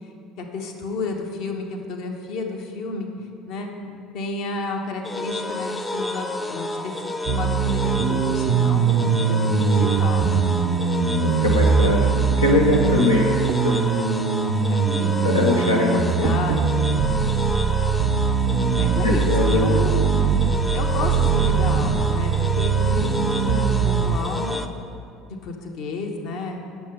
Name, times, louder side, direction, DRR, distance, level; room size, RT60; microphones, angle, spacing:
voice 1, 0.4-3.1 3.5-3.7 4.1-10.4 14.7-15.5 15.9-17.0 18.8-20.3 20.7-24.6 25.4-26.6, left 3 dB, 55° left, 2 dB, 1.0 m, -31 dB
sound 1, 5.0-24.7, left 2 dB, 15° left, 0.5 m, -30 dB
sound 2, 7.3-24.2, right 6 dB, 60° right, 0.4 m, -21 dB
voice 2, 11.2-13.4 13.6-13.9 15.2-16.4 19.0-19.7, left 2 dB, 80° left, -1 dB, 0.6 m, -22 dB
8.4 x 6.9 x 5.5 m, 2.4 s
figure-of-eight pair, 60°, 0 cm